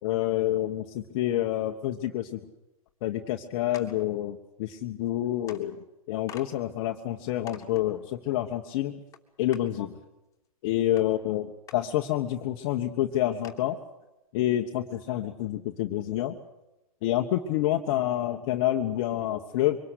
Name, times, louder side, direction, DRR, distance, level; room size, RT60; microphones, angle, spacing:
voice 1, 0.0-2.4 3.0-8.9 9.4-9.9 10.6-11.5 11.7-13.8 14.3-16.4 17.0-19.8, left 13 dB, 45° left, 3 dB, 1.4 m, -28 dB
sound 1, 3.7-4.0 5.1-5.2 5.5-5.6 6.3-6.5 7.0-7.1 7.5-7.8 9.1-9.2 9.5-9.6 11.0-11.1 11.7-11.8 12.4-12.5 12.8-12.9 13.4-13.7, left 8 dB, 15° left, 2.7 m, -45 dB
24.5 x 19.5 x 8.2 m, 0.95 s
hypercardioid pair, 120°, 19 cm